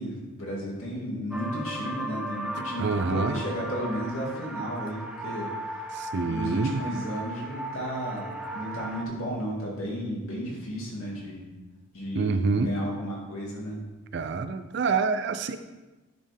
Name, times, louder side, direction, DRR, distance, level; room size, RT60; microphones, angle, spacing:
voice 1, 0.0-5.5 6.3-11.5 11.9-13.8, equal, 75° left, -4 dB, 2.3 m, -33 dB
sound 1, 1.3-9.0, right 1 dB, 5° right, 0.6 m, -36 dB
voice 2, 2.8-3.4 5.9-6.8 12.2-12.7 14.1-15.6, right 4 dB, 55° right, 10 dB, 0.4 m, -27 dB
10.5 x 4.4 x 3.4 m, 1.1 s
head